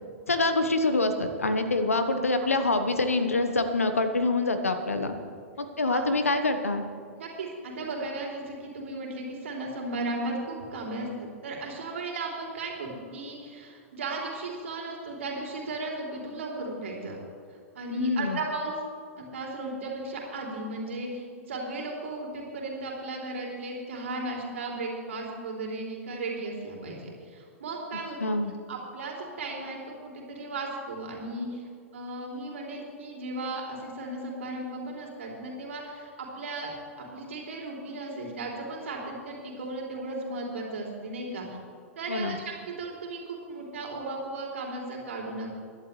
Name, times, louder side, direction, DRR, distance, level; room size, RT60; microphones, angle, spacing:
voice 1, 0.3-5.2 5.6-6.8 17.9-18.4 28.2-28.5 42.1-42.4, left 2 dB, 80° left, 8 dB, 1.2 m, -26 dB
voice 2, 7.2-17.2 17.7-18.8 19.2-28.3 28.7-31.6 31.9-41.5 42.0-42.4 42.7-45.5, right 2 dB, 65° right, -1 dB, 3.2 m, -35 dB
22.5 x 11.0 x 3.3 m, 2.3 s
figure-of-eight pair, 105°, 8 cm